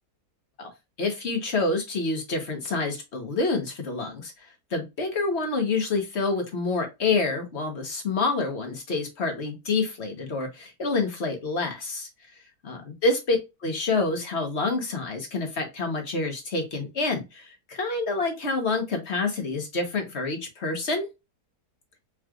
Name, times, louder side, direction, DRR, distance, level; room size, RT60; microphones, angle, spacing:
voice 1, 1.0-4.3 4.7-12.1 12.6-13.4 13.6-21.1, left 3 dB, 45° left, 1.3 m, -27 dB
4.8 x 3.1 x 2.4 m
omnidirectional pair, 1.7 m